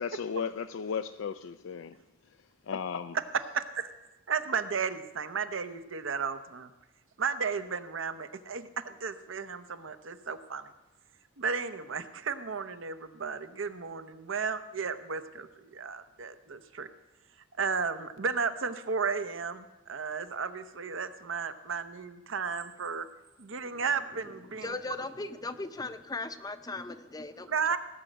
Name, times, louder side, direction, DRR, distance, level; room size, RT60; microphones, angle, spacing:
voice 1, 0.0-2.0 2.3-2.4 2.6-3.2, left 6 dB, 65° left, 0.4 m, -35 dB
voice 2, 3.5-3.9 4.3-6.7 7.2-10.7 11.4-16.9 17.6-23.1 23.4-24.8 27.5-27.8, right 5 dB, 70° right, 0.8 m, -34 dB
voice 3, 24.6-27.8, left 3 dB, 20° left, 0.6 m, -38 dB
17.5 x 6.2 x 7.9 m
head